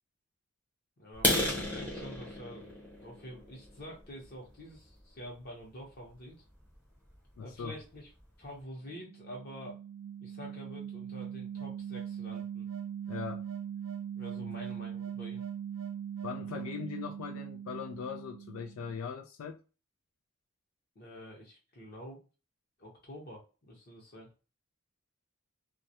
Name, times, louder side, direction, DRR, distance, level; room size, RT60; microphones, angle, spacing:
voice 1, 1.0-6.4 7.4-8.1 8.4-9.8 10.2-12.7 14.1-15.4 20.9-22.2 22.8-24.3, equal, 45° left, 0.9 m, -47 dB
sound 1, 1.1-4.9 5.4-5.6 6.1-6.2 6.6-6.8 7.1-7.2 7.6-7.7 7.9-8.4, left 1 dB, 10° left, 0.7 m, -33 dB
voice 2, 7.4-7.8 13.1-13.5 14.4-14.5 16.2-19.6, left 6 dB, 80° left, 0.3 m, -40 dB
sound 2, 8.9-19.0, right 9 dB, 70° right, 0.4 m, -41 dB
2.3 x 2.0 x 2.7 m
head